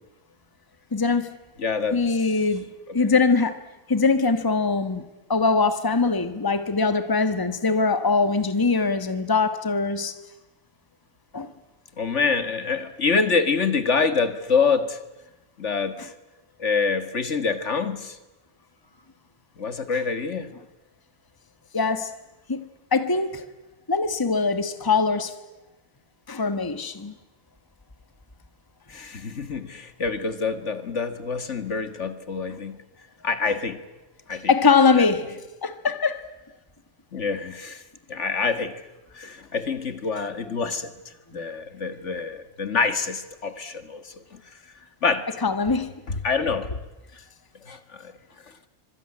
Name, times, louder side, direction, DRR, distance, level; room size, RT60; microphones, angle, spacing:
voice 1, 0.9-1.4 1.9-2.7 2.9-3.6 3.9-5.0 5.3-10.1 11.3-11.5 16.0-16.1 21.7-22.1 22.5-22.6 22.9-23.5 23.9-25.4 26.3-27.1 34.5-36.2 45.4-45.9, left 4 dB, 15° left, 1.4 m, -22 dB
voice 2, 1.6-2.0 3.0-3.1 12.0-15.0 15.6-16.1 16.6-18.2 19.6-20.5 28.9-32.8 33.2-33.8 34.3-34.5 34.9-35.1 37.1-37.8 38.1-38.8 39.1-40.9 41.3-44.1 45.0-45.3 46.1-46.8 47.6-48.1, left 5 dB, 65° left, 2.0 m, -26 dB
25.0 x 23.0 x 9.9 m
omnidirectional pair, 1.3 m